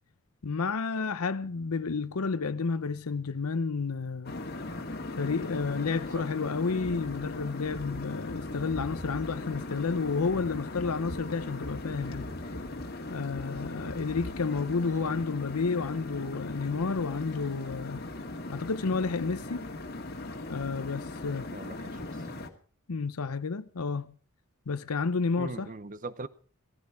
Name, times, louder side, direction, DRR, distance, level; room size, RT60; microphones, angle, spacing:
voice 1, 0.4-4.3 5.2-12.3 13.1-18.0 18.5-19.6 20.5-21.5 22.9-24.1 24.7-25.7, left 4 dB, 90° left, 0.7 m, -31 dB
sound 1, 4.2-22.5, left 2 dB, 45° left, 1.9 m, -39 dB
voice 2, 21.5-22.2 25.3-26.3, right 3 dB, 35° right, 0.8 m, -40 dB
16.5 x 15.0 x 4.7 m
head